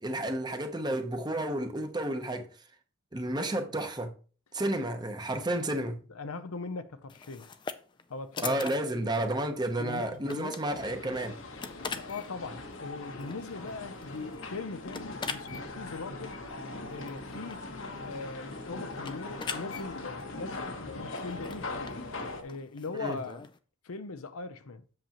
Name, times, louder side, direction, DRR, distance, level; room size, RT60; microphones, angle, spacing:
voice 1, 0.0-2.5 3.1-4.1 4.5-6.0 8.4-11.4 23.0-23.2, right 1 dB, 20° right, 0.8 m, -31 dB
voice 2, 6.1-7.6 8.1-8.5 9.8-10.7 11.8-16.3 16.9-17.7 18.0-22.0 22.4-23.5 23.8-24.8, left 4 dB, 90° left, 0.7 m, -40 dB
sound 1, 7.1-23.6, left 5 dB, 20° left, 0.3 m, -44 dB
sound 2, 10.7-22.4, left 2 dB, 65° left, 1.1 m, -41 dB
7.8 x 7.0 x 3.0 m
head